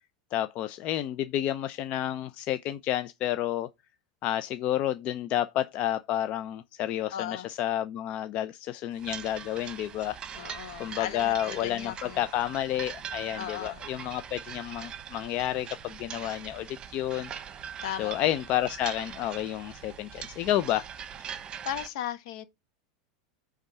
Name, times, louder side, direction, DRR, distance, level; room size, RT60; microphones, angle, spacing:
voice 1, 0.3-3.7 4.2-10.2 10.8-17.3 18.0-20.9, left 12 dB, 45° left, 0.6 m, -30 dB
voice 2, 7.1-7.5 10.3-12.3 13.4-13.8 17.8-18.1 21.6-22.4, left 10 dB, 70° left, 1.4 m, -36 dB
sound 1, 9.0-21.9, right 8 dB, 30° right, 1.1 m, -42 dB
8.8 x 3.6 x 5.4 m
supercardioid pair, 120°, 3 cm